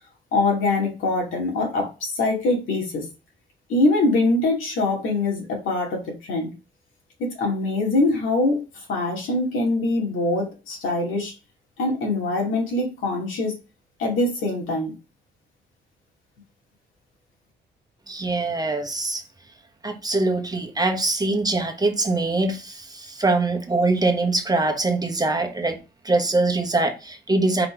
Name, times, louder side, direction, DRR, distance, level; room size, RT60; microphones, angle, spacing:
voice 1, 0.3-3.0 3.7-6.5 7.2-8.6 8.9-11.3 11.8-13.6 14.0-14.9, left 2 dB, 85° left, 2.7 m, -23 dB
voice 2, 18.1-19.2 19.8-27.7, right 2 dB, 20° right, 1.2 m, -23 dB
4.8 x 4.2 x 5.0 m
cardioid pair, 90°, 20 cm